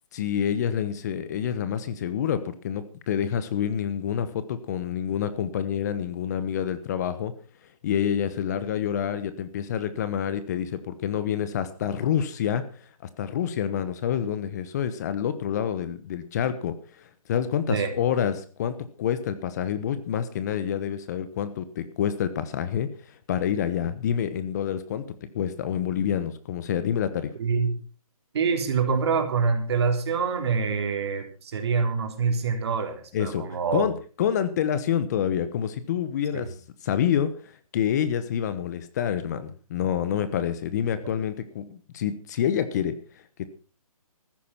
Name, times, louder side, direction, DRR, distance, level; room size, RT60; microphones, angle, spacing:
voice 1, 0.1-7.3 7.8-12.9 13.2-25.0 25.3-27.3 33.1-33.4 33.7-36.5 36.8-43.0 43.4-43.5, left 9 dB, 30° left, 12 dB, 1.1 m, -27 dB
voice 2, 27.4-27.8 28.3-33.9 36.3-36.5, right 5 dB, 45° right, 5 dB, 3.5 m, -25 dB
14.5 x 11.5 x 5.6 m, 0.38 s
hypercardioid pair, 160°, 19 cm